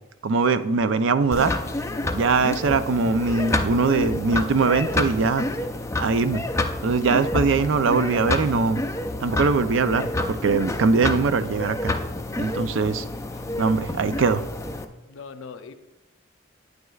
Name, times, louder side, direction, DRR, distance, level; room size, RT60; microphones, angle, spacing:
voice 1, 0.2-1.5 2.1-5.5 6.0-6.4 6.8-8.8 9.2-11.9 12.4-13.0 13.6-14.4, right 4 dB, 70° right, 12 dB, 0.4 m, -21 dB
sound 1, 1.3-14.9, left 2 dB, 15° left, 0.4 m, -28 dB
voice 2, 15.0-15.7, left 5 dB, 85° left, 9 dB, 0.6 m, -41 dB
9.4 x 9.3 x 2.4 m, 0.99 s
head